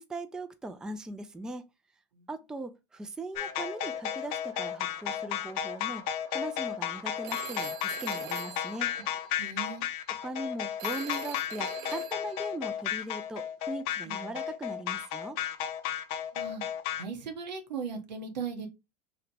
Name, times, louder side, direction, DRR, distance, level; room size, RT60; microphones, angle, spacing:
voice 1, 0.0-1.7 2.3-6.0 6.3-8.9 10.1-15.4, right 1 dB, 5° right, 0.3 m, -39 dB
sound 1, 3.3-9.5, right 4 dB, 20° right, 0.9 m, -54 dB
sound 2, 3.4-17.0, left 10 dB, 60° left, 0.5 m, -33 dB
Telephone, 7.2-9.6 10.8-12.5, right 9 dB, 55° right, 0.7 m, -43 dB
voice 2, 9.4-9.8 14.0-14.4 16.3-16.6 16.9-18.7, right 5 dB, 85° right, 0.9 m, -38 dB
2.9 x 2.1 x 4.0 m
hypercardioid pair, 90°, 21 cm